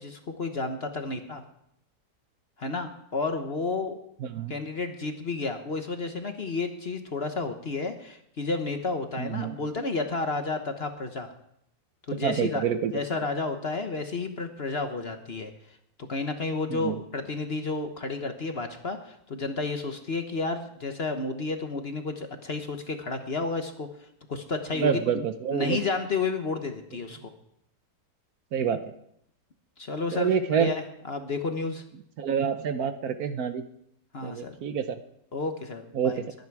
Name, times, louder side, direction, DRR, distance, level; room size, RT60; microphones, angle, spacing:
voice 1, 0.0-1.4 2.6-4.0 4.5-11.3 12.1-12.6 12.9-15.8 16.1-23.9 24.3-25.0 25.5-27.3 29.8-30.8 31.1-31.8 34.1-34.5 35.3-36.2, left 3 dB, 40° left, 6 dB, 1.1 m, -31 dB
voice 2, 4.2-4.6 9.2-9.6 12.1-12.9 16.7-17.0 24.8-25.8 28.5-28.8 30.1-30.7 32.2-33.6 34.2-35.0 35.9-36.3, right 7 dB, 65° right, 10 dB, 1.2 m, -27 dB
21.5 x 9.6 x 4.7 m, 0.75 s
omnidirectional pair, 1.8 m